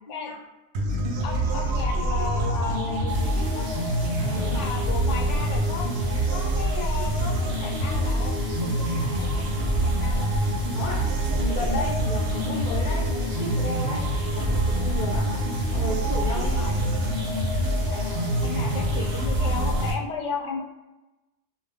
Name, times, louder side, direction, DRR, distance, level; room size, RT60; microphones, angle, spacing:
sound 1, 0.7-19.9, right 1 dB, 65° right, 0.7 m, -25 dB
voice 1, 1.2-3.7 4.3-5.9 6.3-10.3 14.3-14.5 16.6-16.7 17.9-20.6, left 5 dB, 75° left, 1 dB, 0.9 m, -35 dB
sound 2, 3.1-19.9, right 1 dB, 10° right, 0.8 m, -42 dB
voice 2, 4.1-4.7 10.7-14.1 14.3-15.4 15.7-16.7, left 2 dB, 50° left, -2 dB, 0.6 m, -33 dB
2.4 x 2.1 x 3.4 m, 1.0 s
omnidirectional pair, 1.3 m